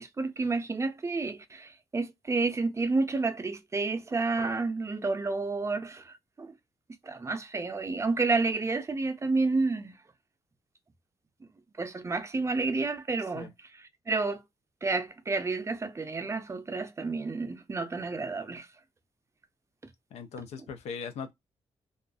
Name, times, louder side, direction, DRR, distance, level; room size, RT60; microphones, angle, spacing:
voice 1, 0.0-6.5 7.0-9.9 11.8-13.5 13.8-14.4 14.8-18.7, right 3 dB, 25° right, 0.4 m, -30 dB
voice 2, 20.1-21.3, left 6 dB, 80° left, 0.4 m, -39 dB
2.4 x 2.3 x 2.3 m
cardioid pair, 70°, 11 cm